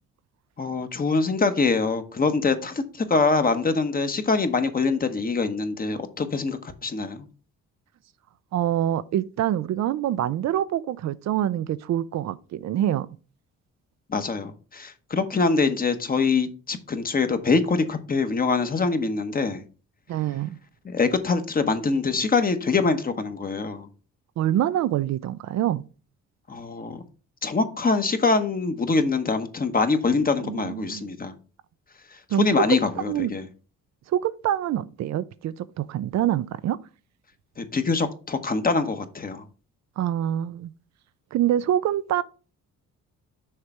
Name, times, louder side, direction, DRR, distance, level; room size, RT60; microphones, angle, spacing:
voice 1, 0.6-7.3 14.1-19.6 20.8-23.9 26.5-27.0 27.4-31.3 32.1-33.4 37.6-39.4, left 4 dB, 30° left, 1.0 m, -24 dB
voice 2, 8.5-13.1 20.1-20.6 24.4-25.8 30.4-31.1 32.3-32.8 33.1-33.3 34.1-36.8 40.0-40.7 41.3-42.2, right 11 dB, 65° right, 0.5 m, -25 dB
6.5 x 3.3 x 5.9 m
cardioid pair, 90°, 30 cm